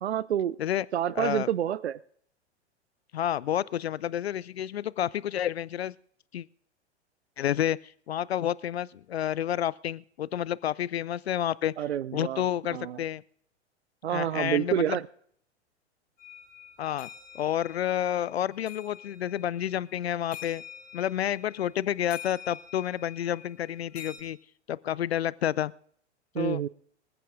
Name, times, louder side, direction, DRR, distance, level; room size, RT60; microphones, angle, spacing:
voice 1, 0.0-0.6 0.9-2.0 11.8-13.0 14.0-15.1 26.3-26.7, right 10 dB, 70° right, 19 dB, 0.5 m, -28 dB
voice 2, 1.2-1.5 3.1-5.9 6.3-6.4 7.4-11.7 12.1-13.2 14.1-15.0 16.8-17.1 17.3-20.6 20.9-24.4 24.7-25.7 26.4-26.6, left 11 dB, 65° left, 23 dB, 0.5 m, -30 dB
sound 1, 16.2-24.2, left 8 dB, 25° left, 5.2 m, -47 dB
26.0 x 14.5 x 2.5 m, 0.65 s
figure-of-eight pair, 95°, 34 cm